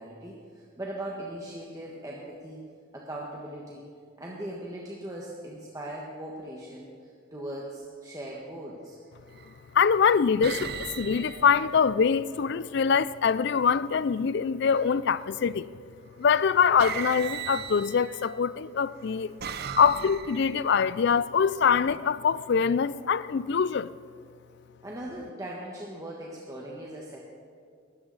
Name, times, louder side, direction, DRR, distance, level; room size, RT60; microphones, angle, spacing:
voice 1, 0.0-2.6 2.9-3.9 4.2-6.9 7.3-9.0 24.8-27.2, right 1 dB, 15° right, 1.3 m, -39 dB
sound 1, 8.1-8.4 9.3-9.8 10.4-12.5 14.7-15.2 16.3-16.4 16.8-18.4 19.0-20.7, right 7 dB, 50° right, 0.7 m, -38 dB
voice 2, 9.7-15.7 16.2-19.3 19.8-23.9, left 6 dB, 55° left, 0.4 m, -24 dB
19.5 x 13.0 x 4.0 m
head